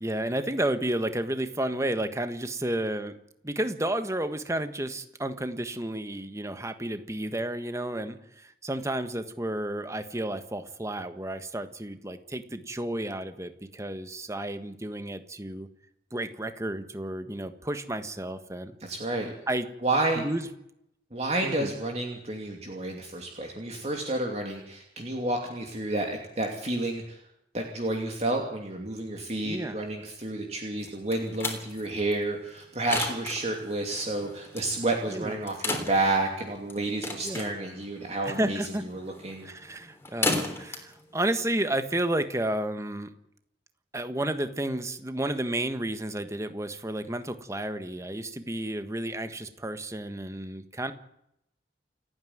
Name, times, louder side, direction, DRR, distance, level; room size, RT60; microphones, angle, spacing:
voice 1, 0.0-3.1 3.4-15.7 16.1-18.8 19.2-19.7 20.1-20.5 21.4-21.7 29.4-29.8 35.1-35.3 37.2-37.5 38.2-38.8 39.4-43.1 43.9-50.9, right 1 dB, 15° right, 9 dB, 1.4 m, -31 dB
voice 2, 18.8-19.3 19.8-20.2 21.1-27.2 27.5-39.5, right 2 dB, 35° right, 2 dB, 2.7 m, -30 dB
sound 1, 30.8-42.2, left 2 dB, 15° left, 3.4 m, -36 dB
28.5 x 9.7 x 9.5 m, 0.78 s
head